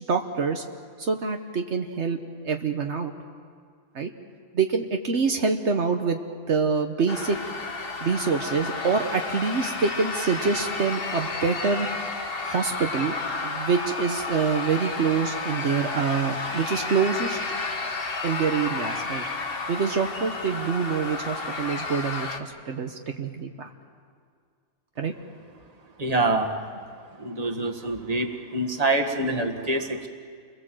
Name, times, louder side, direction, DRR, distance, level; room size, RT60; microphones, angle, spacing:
voice 1, 0.1-0.6 1.0-3.1 3.9-4.1 4.5-6.2 6.5-7.4 8.0-11.9 12.5-13.1 13.4-17.4 18.2-19.2 19.7-23.7 25.0-25.1, right 5 dB, 70° right, 5 dB, 1.4 m, -26 dB
sound 1, 7.1-22.4, left 3 dB, 50° left, 1.6 m, -32 dB
voice 2, 26.0-26.5 27.2-30.1, right 2 dB, 30° right, 3 dB, 1.8 m, -25 dB
29.0 x 21.5 x 7.7 m, 2.1 s
omnidirectional pair, 1.2 m